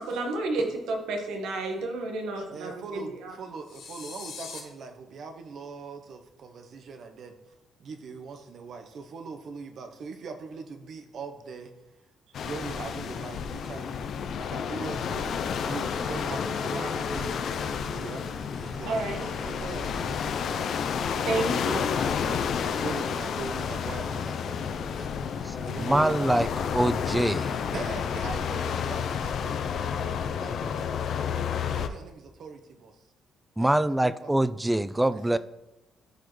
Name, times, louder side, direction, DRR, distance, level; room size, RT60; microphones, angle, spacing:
voice 1, 0.0-3.3 18.9-19.8 21.3-21.8, right 2 dB, 85° right, 3 dB, 1.4 m, -31 dB
voice 2, 2.5-7.4 7.8-11.7 12.4-14.0 14.4-17.4 17.9-18.3 18.6-21.0 21.4-25.2 25.6-26.2 27.7-31.5 31.7-33.0 33.6-34.3 35.1-35.4, right 4 dB, 60° right, 6 dB, 0.9 m, -41 dB
sound 1, 3.6-4.6, left 5 dB, 85° left, 1.6 m, -41 dB
sound 2, 12.3-31.9, left 7 dB, 65° left, 0.5 m, -31 dB
sound 3, 15.0-29.0, left 3 dB, 40° left, 1.3 m, -42 dB
voice 3, 25.4-26.5 26.7-27.6 33.6-35.4, right 1 dB, 10° right, 15 dB, 0.4 m, -24 dB
13.0 x 4.9 x 3.2 m, 0.94 s
cardioid pair, 90°, 0 cm